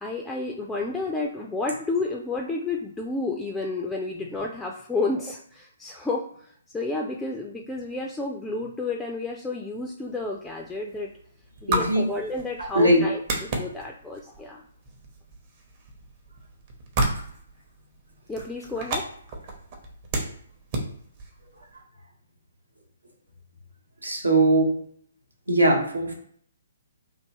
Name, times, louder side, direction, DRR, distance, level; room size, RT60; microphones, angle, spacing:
voice 1, 0.0-6.2 6.7-11.1 11.6-13.2 13.6-14.6 18.3-19.0, left 3 dB, 5° left, 0 dB, 0.3 m, -30 dB
sound 1, 10.0-21.8, right 2 dB, 35° right, 0.7 m, -34 dB
voice 2, 11.7-12.0 12.6-13.1 24.0-24.7 25.5-26.1, right 1 dB, 80° right, 0 dB, 1.0 m, -20 dB
3.2 x 2.6 x 2.9 m, 0.62 s
figure-of-eight pair, 130°, 0 cm